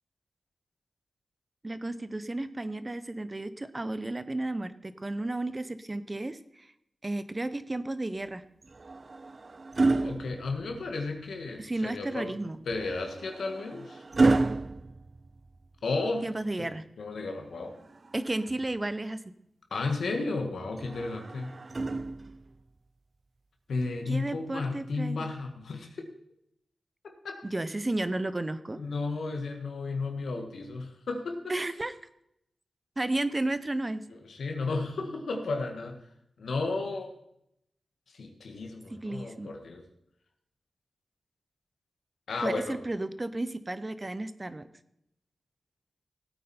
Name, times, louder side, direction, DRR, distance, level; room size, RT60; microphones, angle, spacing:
voice 1, 1.6-6.7 7.0-8.4 11.6-12.6 16.2-16.8 18.1-19.3 24.1-25.3 27.4-28.8 31.5-31.9 33.0-34.0 38.9-39.5 42.4-44.7, right 2 dB, 25° right, 13 dB, 0.8 m, -33 dB
sound 1, 8.6-11.1 12.7-15.9 17.6-18.8 20.8-22.6 23.8-24.0, right 3 dB, 40° right, 0.4 m, -31 dB
voice 2, 10.0-12.3 12.6-14.0 15.8-16.3 16.6-16.7 17.0-17.7 19.7-21.6 23.7-25.9 27.2-27.4 28.8-31.5 34.3-36.0 36.4-37.1 38.1-39.8 42.3-42.8, left 3 dB, 85° left, 3 dB, 1.7 m, -33 dB
16.5 x 9.1 x 4.4 m, 0.79 s
wide cardioid pair, 85°, 0 cm